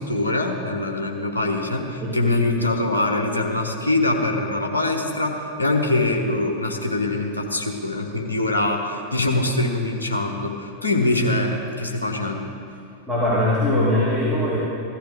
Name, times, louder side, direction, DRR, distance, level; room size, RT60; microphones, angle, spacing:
voice 1, 0.0-12.5, left 2 dB, 80° left, 2 dB, 1.3 m, -23 dB
voice 2, 2.0-2.3 13.1-14.6, left 1 dB, ahead, -11 dB, 3.3 m, -21 dB
16.0 x 13.5 x 3.8 m, 2.4 s
figure-of-eight pair, 90°, 0 cm